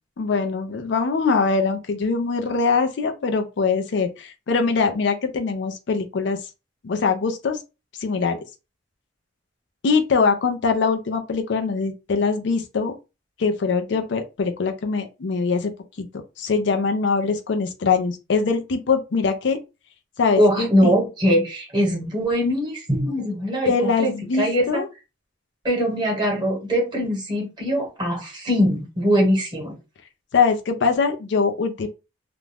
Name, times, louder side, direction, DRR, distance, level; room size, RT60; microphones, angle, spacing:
voice 1, 0.2-6.4 6.8-7.6 8.0-8.4 9.8-12.9 13.4-15.7 16.0-16.1 16.4-19.6 20.2-20.9 23.7-24.9 30.3-31.9, left 4 dB, 65° left, 0.4 m, -22 dB
voice 2, 20.4-24.1 24.4-24.8 25.6-29.8, equal, 25° right, 1.3 m, -22 dB
2.4 x 2.2 x 3.2 m
head